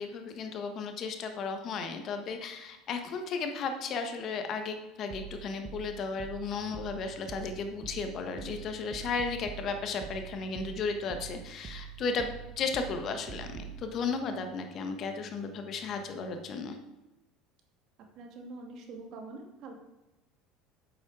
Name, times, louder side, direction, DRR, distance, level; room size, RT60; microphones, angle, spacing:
voice 1, 0.0-12.3 12.6-16.8, left 4 dB, 50° left, 6 dB, 1.5 m, -34 dB
sound 1, 5.1-13.8, right 8 dB, 40° right, 1.4 m, -44 dB
sound 2, 6.6-16.6, equal, 15° left, 2.4 m, -58 dB
voice 2, 18.1-19.7, right 3 dB, 60° right, 3 dB, 2.3 m, -44 dB
8.4 x 7.5 x 4.9 m, 1.0 s
supercardioid pair, 90°, 0 cm